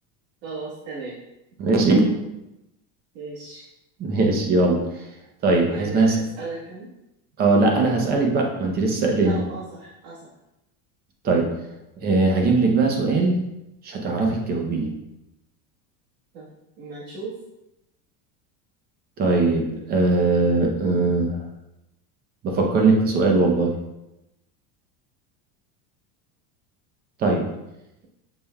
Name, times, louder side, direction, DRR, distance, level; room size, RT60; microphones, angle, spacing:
voice 1, 0.4-1.2 3.1-3.6 5.6-6.9 9.2-10.3 16.3-16.5 16.8-17.4, right 3 dB, 70° right, -7 dB, 1.4 m, -36 dB
voice 2, 1.6-2.1 4.0-4.8 5.4-6.2 7.4-9.4 11.2-11.5 12.0-13.4 13.8-14.9 19.2-21.4 22.4-23.7 27.2-27.5, right 3 dB, 25° right, 1 dB, 0.7 m, -20 dB
7.0 x 3.3 x 2.3 m, 0.91 s
cardioid pair, 170°, 36 cm